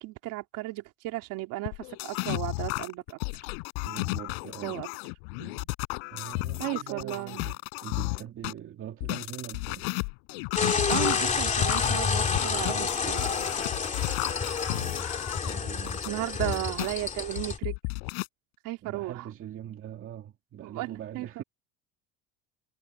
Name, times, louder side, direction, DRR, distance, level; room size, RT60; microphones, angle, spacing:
voice 1, 0.0-3.2 4.6-4.9 5.4-5.7 6.6-7.4 10.9-13.5 16.0-17.8 18.6-19.3 20.6-21.4, right 18 dB, 55° right, 3.0 m, -35 dB
sound 1, 1.7-8.5 9.0-16.9 17.4-18.3, left 40 dB or more, 80° left, 5.2 m, -33 dB
voice 2, 3.8-4.8 6.1-9.8 14.7-15.1 15.4-16.7 18.8-21.4, right 11 dB, 35° right, 2.1 m, -42 dB
sound 2, 10.6-17.6, left 5 dB, 20° left, 2.8 m, -29 dB
cardioid pair, 160°, 38 cm